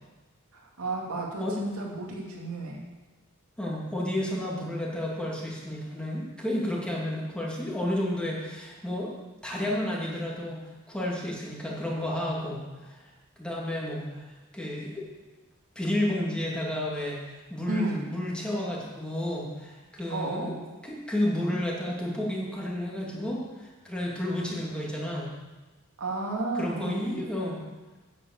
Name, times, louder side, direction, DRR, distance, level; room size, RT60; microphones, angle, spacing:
voice 1, 0.5-2.8 17.7-18.1 20.1-20.6 26.0-27.2, right 2 dB, 90° right, -1 dB, 2.6 m, -32 dB
voice 2, 3.6-9.1 9.4-10.6 10.9-13.0 13.4-14.3 14.5-15.0 15.7-20.6 20.8-25.3 26.5-27.6, left 1 dB, 5° left, -4 dB, 2.7 m, -31 dB
9.8 x 8.2 x 7.9 m, 1.2 s
head